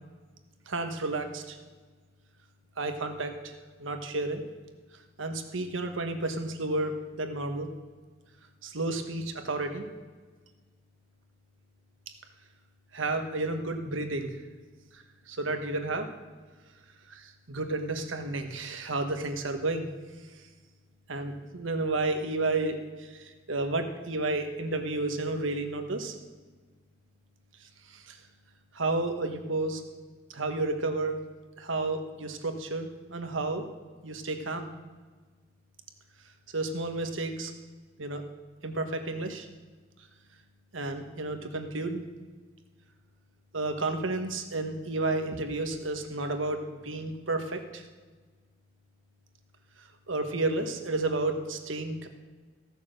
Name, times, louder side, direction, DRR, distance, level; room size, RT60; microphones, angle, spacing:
voice 1, 0.7-1.6 2.8-3.5 3.8-4.4 5.2-7.7 8.6-9.9 12.9-14.3 14.9-16.1 17.1-19.9 21.1-26.1 27.9-28.2 28.7-29.8 30.3-31.2 31.6-33.7 34.0-34.7 36.5-37.5 38.0-38.2 38.6-39.5 40.7-42.0 43.5-47.8 50.1-52.1, right 2 dB, 85° right, 6 dB, 1.3 m, -31 dB
15.0 x 7.0 x 6.5 m, 1.4 s
head